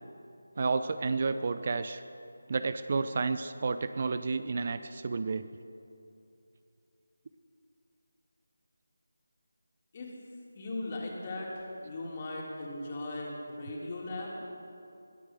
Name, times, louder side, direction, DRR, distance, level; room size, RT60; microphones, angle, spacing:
voice 1, 0.6-2.0 2.5-5.5, right 4 dB, 40° right, 11 dB, 0.6 m, -31 dB
voice 2, 10.5-14.4, left 2 dB, 30° left, -3 dB, 3.4 m, -38 dB
21.5 x 9.6 x 6.7 m, 2.6 s
figure-of-eight pair, 160°, 0 cm